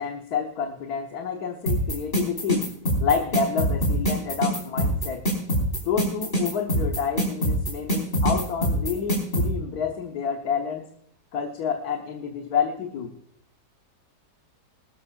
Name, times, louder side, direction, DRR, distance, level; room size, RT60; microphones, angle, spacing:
voice 1, 0.0-2.7 3.0-5.2 5.8-10.8 11.3-13.1, left 6 dB, 65° left, 3 dB, 1.5 m, -28 dB
sound 1, 1.7-9.5, equal, 30° left, 4.4 m, -23 dB
20.5 x 12.5 x 2.4 m, 0.71 s
omnidirectional pair, 1.9 m